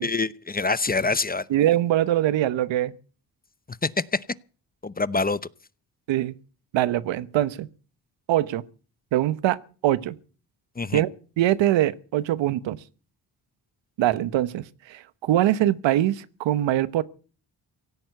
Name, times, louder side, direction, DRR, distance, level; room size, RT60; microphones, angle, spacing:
voice 1, 0.0-1.4 3.8-4.2 4.8-5.4 10.8-11.0, left 3 dB, 20° left, 0.7 m, -25 dB
voice 2, 1.5-2.9 6.1-6.4 6.7-7.7 8.3-8.6 9.1-10.2 10.9-11.1 11.4-12.8 14.0-17.0, right 13 dB, 80° right, 1.0 m, -23 dB
17.0 x 8.7 x 8.3 m
supercardioid pair, 55°, 44 cm